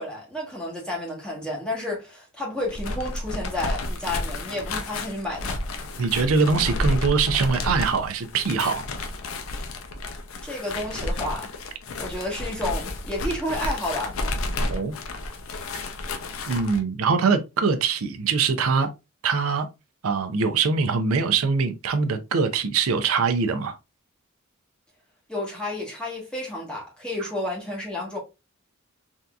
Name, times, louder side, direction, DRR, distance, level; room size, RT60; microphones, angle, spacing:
voice 1, 0.0-5.6 10.4-11.5 12.0-14.1 25.3-28.2, left 1 dB, 5° left, 1.2 m, -31 dB
sound 1, 2.6-16.8, left 2 dB, 70° left, 0.5 m, -31 dB
voice 2, 6.0-8.8 14.6-14.9 16.5-18.9 19.2-19.7 20.0-23.8, right 5 dB, 85° right, 0.5 m, -23 dB
3.5 x 2.7 x 2.3 m
head